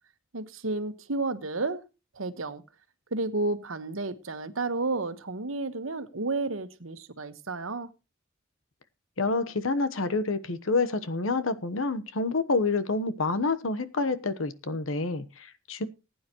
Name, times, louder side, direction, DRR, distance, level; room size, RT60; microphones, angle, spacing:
voice 1, 0.3-1.8 2.1-2.6 3.1-7.9, right 3 dB, 85° right, 10 dB, 1.3 m, -31 dB
voice 2, 9.2-15.8, left 3 dB, 80° left, 12 dB, 1.1 m, -28 dB
19.5 x 9.4 x 3.0 m, 0.28 s
head